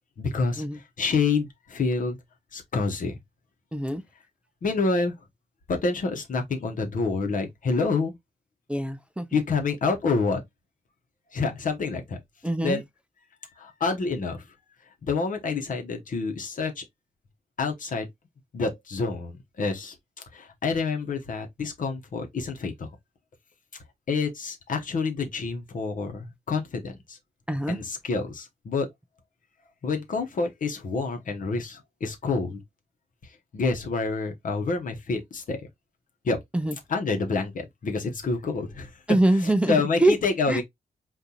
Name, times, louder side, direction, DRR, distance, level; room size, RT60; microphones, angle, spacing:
voice 1, 0.2-0.6 1.0-2.2 2.5-3.2 4.6-5.1 5.7-8.1 9.3-10.4 11.3-12.2 12.6-12.8 13.6-14.4 15.0-16.8 17.6-18.1 18.5-19.9 20.3-22.9 24.1-27.2 27.7-28.9 29.8-32.6 33.5-35.7 36.2-36.4 36.9-38.9 39.7-40.6, left 4 dB, 65° left, 1.0 m, -27 dB
voice 2, 3.7-4.0 8.7-9.3 12.4-12.8 27.5-27.8 36.5-36.8 39.1-40.2 40.5-40.6, right 1 dB, 10° right, 0.4 m, -24 dB
3.8 x 2.6 x 2.8 m
cardioid pair, 85°, 15 cm